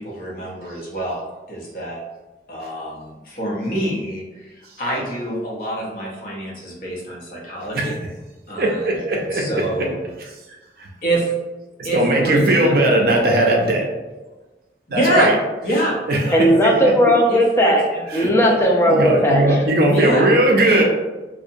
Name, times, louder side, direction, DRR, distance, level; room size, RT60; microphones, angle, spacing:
voice 1, 0.0-2.0 2.5-8.0 8.5-9.9 11.0-11.3 11.8-13.1 13.5-13.6 14.9-15.3 15.6-16.0 16.2-16.5 17.3-18.3 19.9-20.3 20.6-20.8, right 1 dB, 55° left, -4 dB, 0.6 m, -26 dB
voice 2, 8.6-9.9 10.8-10.9 11.8-13.9 14.9-15.3 16.1-16.7 18.1-18.3 18.9-20.8, right 1 dB, 55° right, 0 dB, 0.4 m, -18 dB
voice 3, 16.3-17.8 18.1-19.6, equal, 15° left, -1 dB, 0.3 m, -16 dB
2.7 x 2.0 x 2.5 m, 1.2 s
head